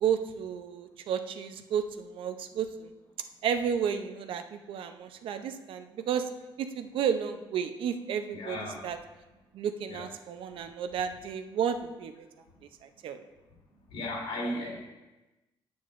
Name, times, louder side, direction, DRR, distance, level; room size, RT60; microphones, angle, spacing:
voice 1, 0.0-2.9 3.4-6.3 6.6-8.6 8.8-9.0 9.5-12.1 12.8-13.2, right 8 dB, 70° right, 8 dB, 0.6 m, -32 dB
voice 2, 8.3-8.8 9.9-10.1 13.9-14.8, left 1 dB, 80° left, -2 dB, 3.0 m, -35 dB
9.2 x 8.6 x 2.5 m, 1.1 s
cardioid pair, 135°, 9 cm